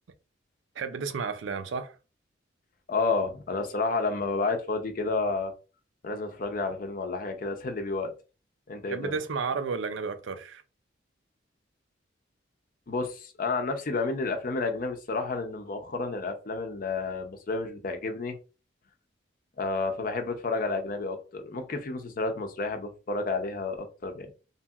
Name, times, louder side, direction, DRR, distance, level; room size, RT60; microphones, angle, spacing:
voice 1, 0.8-1.9 8.9-10.6, right 5 dB, 80° right, 0.4 m, -32 dB
voice 2, 2.9-5.5 6.0-8.1 8.7-9.2 12.9-18.4 19.6-24.3, left 3 dB, 45° left, 0.5 m, -30 dB
2.8 x 2.7 x 2.3 m
head